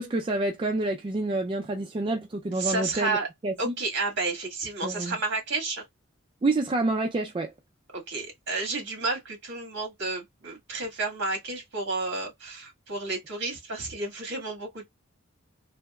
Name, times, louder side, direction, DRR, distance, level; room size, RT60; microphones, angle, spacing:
voice 1, 0.0-3.2 3.4-3.7 4.8-5.2 6.4-7.5, right 2 dB, 25° right, 0.3 m, -28 dB
voice 2, 2.6-3.3 3.6-5.8 7.9-14.9, right 3 dB, 55° right, 1.8 m, -31 dB
3.3 x 2.8 x 2.2 m
head